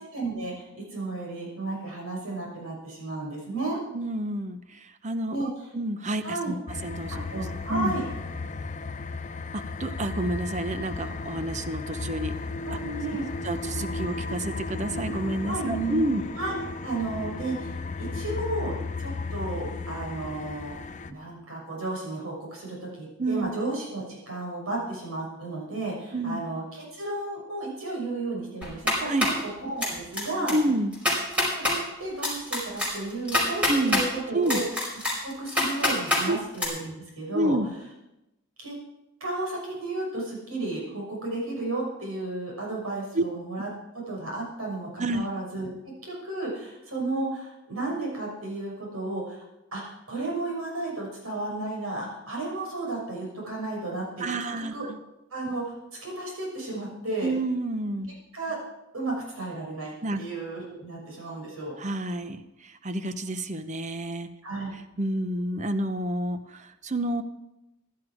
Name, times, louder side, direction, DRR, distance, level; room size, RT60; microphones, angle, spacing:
voice 1, 0.0-3.8 5.3-5.7 6.2-6.5 7.3-8.1 12.6-13.2 15.2-16.0 16.4-16.6 16.8-20.7 21.1-29.1 29.4-30.5 31.3-34.7 35.1-37.6 38.6-38.8 39.2-45.7 46.0-49.4 49.7-54.2 54.6-54.8 55.3-57.3 58.3-58.6 58.9-61.7 64.4-64.7, right 2 dB, 85° right, -2 dB, 6.3 m, -33 dB
voice 2, 3.9-6.5 6.8-7.9 9.5-12.3 12.7-12.8 13.4-16.2 23.2-23.5 26.1-26.4 29.0-29.3 30.5-30.9 33.7-34.0 34.3-34.6 36.3-36.4 37.3-37.7 43.1-43.2 45.0-45.2 54.2-55.0 57.2-58.1 60.0-60.2 61.8-62.4 62.8-64.3 65.0-67.2, right 1 dB, 35° right, 10 dB, 0.8 m, -29 dB
sound 1, 6.7-21.1, left 3 dB, 35° left, 0.6 m, -34 dB
sound 2, 28.6-29.4 29.8-30.2 30.5-30.6 30.9-31.7 32.2-34.0 34.5-36.2 36.6-36.7, left 1 dB, 5° right, 5.1 m, -25 dB
16.0 x 11.5 x 4.9 m, 0.93 s
head